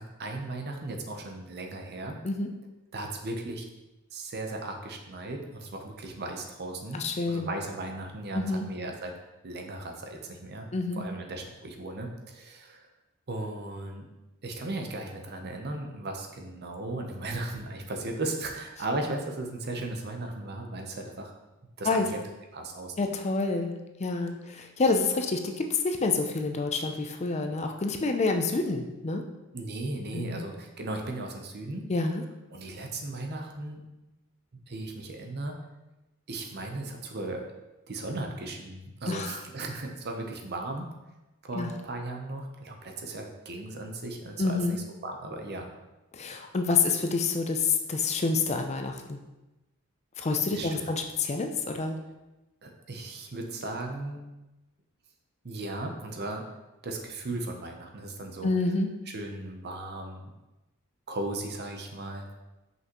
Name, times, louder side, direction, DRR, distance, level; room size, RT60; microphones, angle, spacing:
voice 1, 0.0-2.2 2.9-3.7 4.1-7.0 7.2-9.2 9.4-10.7 11.0-12.9 13.3-14.1 14.4-21.3 21.8-23.1 29.5-32.0 32.5-33.8 34.7-35.5 36.3-37.5 37.9-41.0 41.4-45.7 50.5-50.9 52.6-54.2 55.4-56.4 56.8-58.6 59.1-60.3 61.1-62.3, right 2 dB, 45° right, 3 dB, 0.8 m, -36 dB
voice 2, 6.9-7.5 8.3-8.7 10.7-11.0 21.8-22.1 23.0-29.2 30.1-30.4 31.9-32.2 39.1-39.4 41.5-41.7 44.4-44.8 46.1-49.2 50.2-52.0 58.4-58.9, left 3 dB, 30° left, 4 dB, 0.4 m, -28 dB
6.0 x 5.5 x 3.0 m, 1.0 s
head